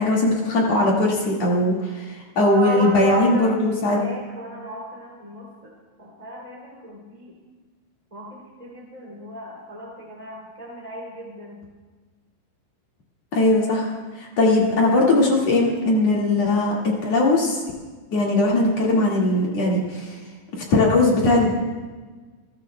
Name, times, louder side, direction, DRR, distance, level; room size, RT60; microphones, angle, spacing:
voice 1, 0.0-4.0 13.3-17.6 18.1-20.2 20.7-21.5, left 2 dB, 50° left, -3 dB, 2.1 m, -20 dB
voice 2, 2.5-5.7 6.0-7.3 8.1-11.6, right 2 dB, 15° right, -4 dB, 1.3 m, -35 dB
28.5 x 14.0 x 2.2 m, 1.4 s
omnidirectional pair, 5.7 m